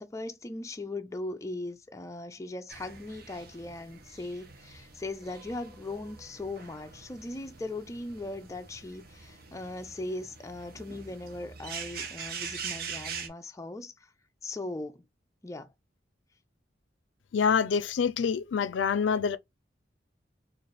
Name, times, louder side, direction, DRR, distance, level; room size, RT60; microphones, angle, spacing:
voice 1, 0.0-14.1 14.4-15.0 15.4-15.7, left 2 dB, 15° left, 0.4 m, -39 dB
sound 1, 2.7-13.3, right 6 dB, 55° right, 0.8 m, -43 dB
voice 2, 17.3-19.4, left 6 dB, 85° left, 0.4 m, -26 dB
3.9 x 2.4 x 3.3 m
head